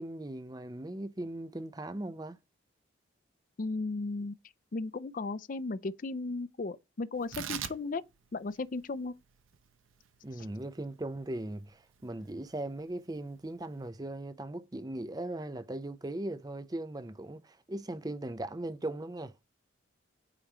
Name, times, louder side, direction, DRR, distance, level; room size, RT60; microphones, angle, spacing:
voice 1, 0.0-2.4 10.2-19.5, right 1 dB, 20° right, 0.5 m, -39 dB
voice 2, 3.6-4.4 4.7-8.0 8.3-9.1, left 3 dB, 40° left, 0.4 m, -35 dB
Tearing, 7.1-13.9, right 9 dB, 90° right, 0.7 m, -46 dB
8.8 x 3.0 x 4.9 m
head